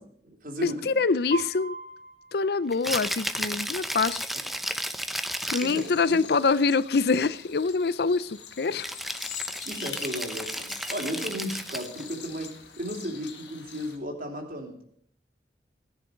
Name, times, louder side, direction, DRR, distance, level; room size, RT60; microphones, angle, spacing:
voice 1, 0.0-1.0 5.6-6.2 9.6-12.5 12.8-14.8, equal, 50° right, 3.3 m, -35 dB
voice 2, 0.6-1.8 2.3-4.3 5.5-8.3 8.6-8.9, left 4 dB, 60° left, 0.5 m, -25 dB
Piano, 1.3-3.3, right 2 dB, 35° left, 1.8 m, -40 dB
Rattle (instrument), 2.7-5.9 8.8-12.1, equal, ahead, 0.6 m, -33 dB
sound 1, 5.4-14.0, left 8 dB, 90° left, 1.9 m, -44 dB
18.5 x 10.5 x 5.2 m
head